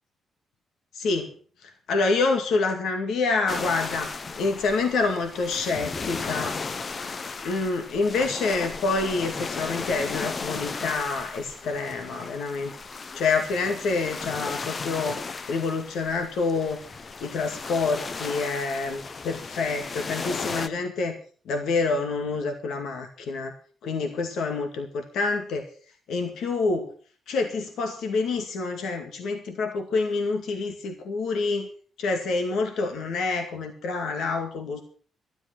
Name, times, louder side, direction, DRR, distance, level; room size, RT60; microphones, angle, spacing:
voice 1, 0.9-1.3 1.6-6.9 7.4-12.7 13.1-16.8 17.2-21.2 21.5-23.5 23.8-25.7 26.1-26.9 27.3-31.7 32.0-34.8, left 4 dB, 75° left, 4 dB, 2.1 m, -27 dB
sound 1, 3.5-20.7, left 4 dB, 35° left, 0.7 m, -35 dB
13.0 x 11.5 x 6.2 m, 0.44 s
cardioid pair, 135°, 0 cm